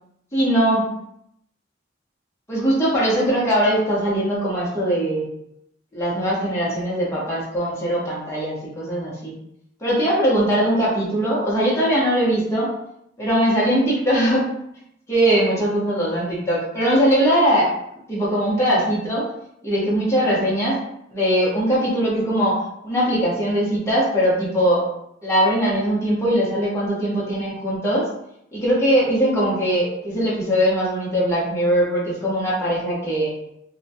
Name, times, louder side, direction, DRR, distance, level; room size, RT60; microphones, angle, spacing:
voice 1, 0.3-0.9 2.5-5.2 5.9-9.3 9.8-12.7 13.2-14.5 15.1-17.7 18.1-19.3 19.6-20.8 21.1-22.6 22.8-24.8 25.2-28.1 28.5-33.3, equal, 15° left, -7 dB, 1.0 m, -20 dB
2.9 x 2.4 x 2.7 m, 0.76 s
head